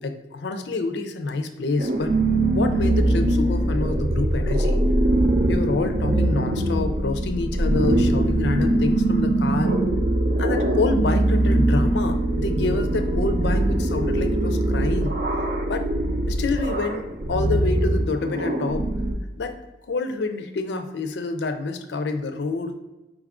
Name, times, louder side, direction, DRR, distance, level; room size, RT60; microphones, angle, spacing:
voice 1, 0.0-2.2 2.5-4.8 5.5-9.8 10.4-15.2 15.7-15.9 16.3-18.9 19.4-19.6 19.9-22.8, left 3 dB, 75° left, 8 dB, 0.4 m, -27 dB
sound 1, 1.8-19.1, right 1 dB, 50° right, 0.5 m, -22 dB
5.1 x 2.4 x 3.5 m, 1.1 s
head